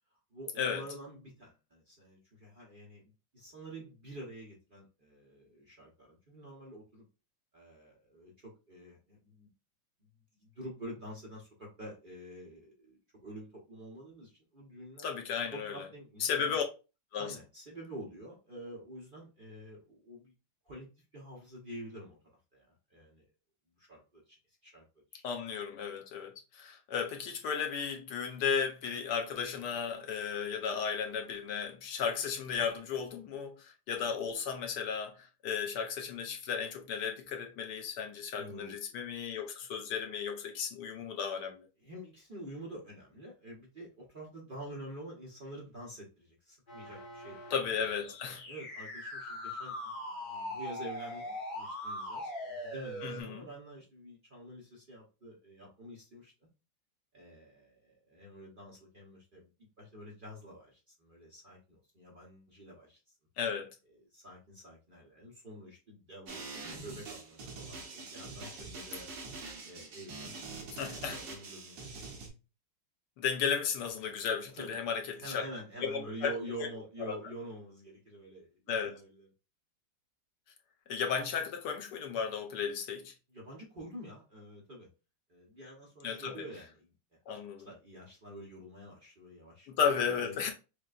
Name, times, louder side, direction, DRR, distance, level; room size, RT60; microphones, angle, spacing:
voice 1, 0.3-7.0 7.5-9.5 10.3-15.1 15.5-16.6 17.2-20.3 20.6-20.9 21.1-22.2 22.5-23.2 23.8-24.4 24.6-24.8 25.1-25.2 38.3-38.7 41.8-47.4 47.8-47.9 48.3-56.3 57.1-59.5 59.8-63.2 64.1-69.1 69.6-72.0 74.5-79.3 83.3-84.9 85.3-86.9 87.3-90.5, right 1 dB, 40° right, 0.8 m, -48 dB
voice 2, 15.0-15.8 16.2-16.6 17.1-17.3 25.2-41.7 47.5-48.4 53.0-53.4 63.4-63.7 70.8-71.2 73.2-75.4 75.8-76.3 78.7-78.9 80.9-83.1 86.0-86.4 87.3-87.7 89.7-90.5, left 6 dB, 75° left, 1.1 m, -34 dB
sound 1, 46.7-53.2, left 1 dB, 35° left, 1.1 m, -41 dB
sound 2, 66.3-72.3, right 3 dB, 60° right, 1.5 m, -44 dB
6.4 x 2.2 x 2.4 m
omnidirectional pair, 1.9 m